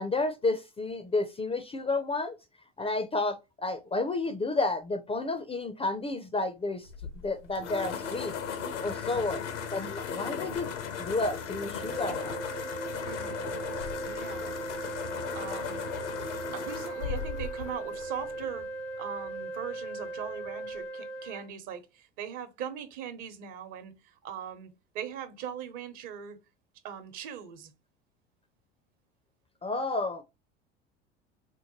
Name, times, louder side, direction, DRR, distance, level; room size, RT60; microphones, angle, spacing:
voice 1, 0.0-2.4 2.8-6.9 7.2-8.3 8.8-9.4 9.7-10.7 11.0-12.4 29.6-30.2, left 3 dB, 15° left, 0.5 m, -31 dB
sound 1, 6.8-18.7, left 6 dB, 85° left, 0.9 m, -37 dB
voice 2, 9.0-9.4 13.0-13.6 14.0-14.6 15.3-15.8 16.5-18.7 19.0-26.4 26.8-27.7, right 8 dB, 55° right, 1.0 m, -40 dB
sound 2, 11.8-21.4, right 2 dB, 90° right, 0.9 m, -39 dB
4.4 x 2.2 x 2.9 m
hypercardioid pair, 80°, 35 cm